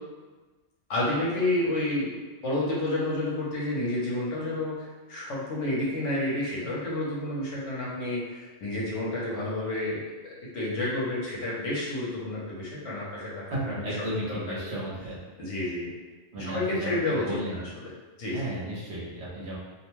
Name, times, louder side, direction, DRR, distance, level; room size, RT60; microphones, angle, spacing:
voice 1, 0.9-2.2 2.4-14.7 15.4-15.9 16.4-17.4 18.2-18.4, left 1 dB, 75° left, -5 dB, 1.1 m, -30 dB
voice 2, 13.5-15.2 15.6-15.7 16.3-17.6 18.3-19.6, right 1 dB, 65° right, -6 dB, 1.0 m, -34 dB
2.6 x 2.2 x 3.0 m, 1.3 s
omnidirectional pair, 1.3 m